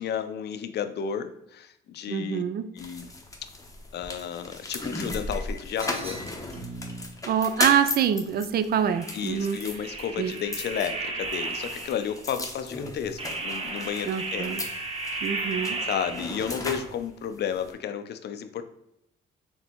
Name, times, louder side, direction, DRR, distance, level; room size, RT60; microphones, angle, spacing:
voice 1, 0.0-2.4 2.7-3.1 3.4-3.5 3.9-6.2 9.1-14.6 15.8-18.6, left 8 dB, 55° left, 9 dB, 0.5 m, -32 dB
voice 2, 2.1-2.7 7.3-9.6 10.2-10.3 14.1-14.6 15.2-15.8, right 8 dB, 50° right, 11 dB, 0.4 m, -25 dB
sound 1, 2.8-17.7, left 2 dB, 15° left, 0.7 m, -37 dB
sound 2, 5.8-7.1 8.8-12.2 13.2-16.6, right 3 dB, 30° right, 0.8 m, -35 dB
4.2 x 3.4 x 2.9 m, 0.82 s
cardioid pair, 90°, 20 cm